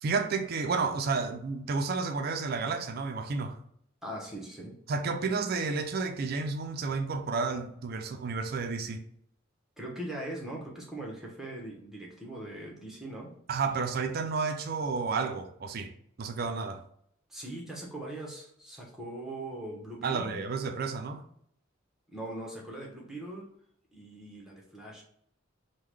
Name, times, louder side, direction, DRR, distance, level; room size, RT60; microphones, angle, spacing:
voice 1, 0.0-3.6 4.9-9.0 13.5-15.9 16.2-16.8 20.0-21.2, right 4 dB, 50° right, 0.4 m, -31 dB
voice 2, 4.0-4.7 5.3-5.4 9.8-13.3 17.3-20.4 22.1-23.5 23.9-25.0, right 1 dB, ahead, 0.8 m, -41 dB
3.7 x 2.2 x 3.1 m
head